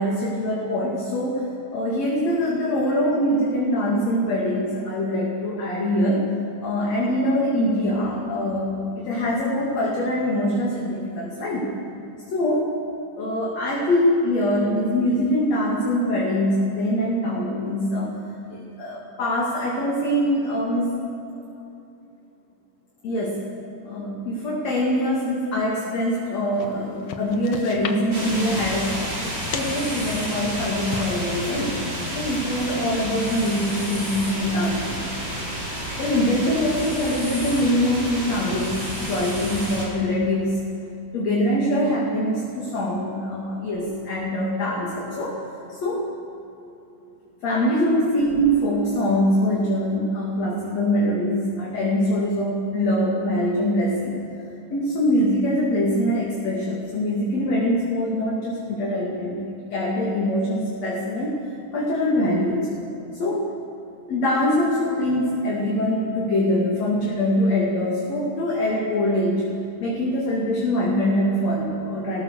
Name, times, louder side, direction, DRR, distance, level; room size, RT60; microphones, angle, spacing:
voice 1, 0.0-1.4 1.7-6.3 6.6-11.7 12.3-12.7 13.2-18.2 18.5-20.9 21.3-21.4 23.0-23.5 23.8-29.0 29.5-31.8 32.2-35.0 36.0-40.6 41.1-45.4 45.7-46.1 47.4-54.2 54.7-62.7 63.2-63.5 64.1-69.5 69.8-72.2, equal, 45° left, -4 dB, 3.5 m, -23 dB
sound 1, 26.5-33.7, left 6 dB, 80° left, 1.4 m, -38 dB
sound 2, 28.1-39.8, equal, 35° right, 7.3 m, -30 dB
23.0 x 19.0 x 6.7 m, 2.9 s
omnidirectional pair, 4.6 m